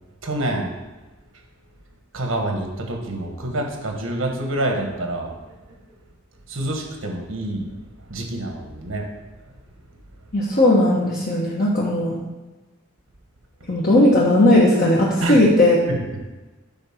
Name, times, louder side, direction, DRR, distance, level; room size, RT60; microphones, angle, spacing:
voice 1, 0.2-0.7 2.1-5.8 6.5-7.7 8.1-9.1 9.4-9.5 15.2-15.5 15.9-16.0, right 1 dB, 85° right, 2 dB, 1.5 m, -27 dB
voice 2, 10.3-12.1 13.7-15.8, left 1 dB, 50° left, -6 dB, 1.4 m, -17 dB
8.1 x 4.1 x 5.9 m, 1.2 s
head